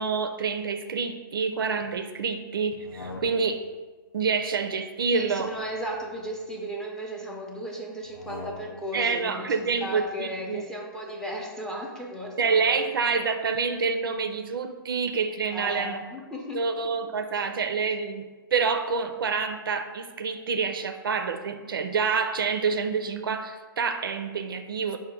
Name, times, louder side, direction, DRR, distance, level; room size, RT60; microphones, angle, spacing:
voice 1, 0.0-3.6 4.1-5.5 8.9-10.6 12.4-16.0 16.5-25.0, right 5 dB, 70° right, 7 dB, 0.4 m, -27 dB
sound 1, 2.7-3.8 5.0-6.7 8.0-9.0, left 3 dB, 90° left, 0.6 m, -44 dB
voice 2, 5.1-9.5 9.8-12.9 15.5-16.7, equal, 5° left, -1 dB, 0.5 m, -35 dB
5.1 x 2.2 x 4.4 m, 1.3 s
hypercardioid pair, 125°, 12 cm